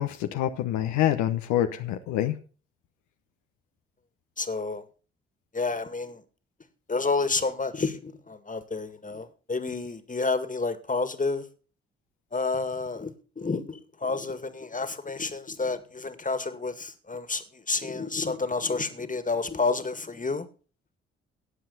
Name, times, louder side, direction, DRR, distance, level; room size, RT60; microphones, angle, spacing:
voice 1, 0.0-2.4, left 12 dB, 75° left, 7 dB, 1.0 m, -26 dB
voice 2, 4.4-4.8 5.5-6.2 6.9-11.5 12.3-20.5, left 3 dB, 25° left, 11 dB, 2.1 m, -30 dB
18.0 x 7.5 x 4.1 m, 0.37 s
hypercardioid pair, 40°, 29 cm